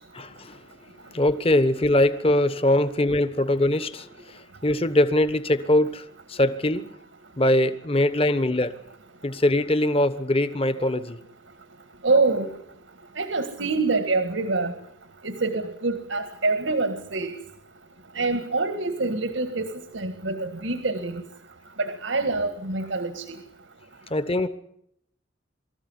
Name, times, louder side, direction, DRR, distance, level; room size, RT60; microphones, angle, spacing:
voice 1, 0.1-6.8 7.4-8.8 9.2-11.2 24.1-24.5, left 1 dB, 30° left, 13 dB, 1.2 m, -22 dB
voice 2, 12.0-12.5 13.2-14.7 15.2-17.3 18.2-21.2 21.8-23.4, right 3 dB, 85° right, 9 dB, 1.8 m, -25 dB
23.5 x 14.5 x 9.7 m, 0.75 s
head